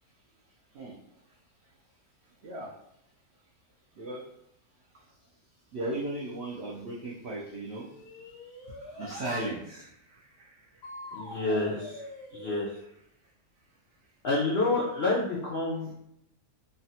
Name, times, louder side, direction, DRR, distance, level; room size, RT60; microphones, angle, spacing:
voice 1, 5.7-7.9 9.0-9.9, right 2 dB, 75° right, -3 dB, 0.6 m, -35 dB
sound 1, 7.7-9.5 10.8-12.9, left 2 dB, 90° left, 1.2 m, -44 dB
voice 2, 11.1-12.0 12.3-12.7 14.2-15.9, left 2 dB, 70° left, -5 dB, 0.5 m, -28 dB
3.2 x 2.2 x 2.7 m, 0.76 s
omnidirectional pair, 1.7 m